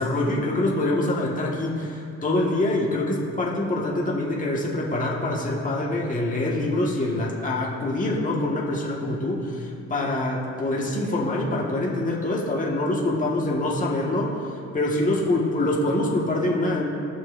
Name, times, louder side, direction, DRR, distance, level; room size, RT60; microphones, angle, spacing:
voice 1, 0.0-14.4 14.7-16.9, left 1 dB, 25° left, -3 dB, 1.5 m, -25 dB
16.5 x 6.1 x 2.5 m, 2.8 s
cardioid pair, 90°, 30 cm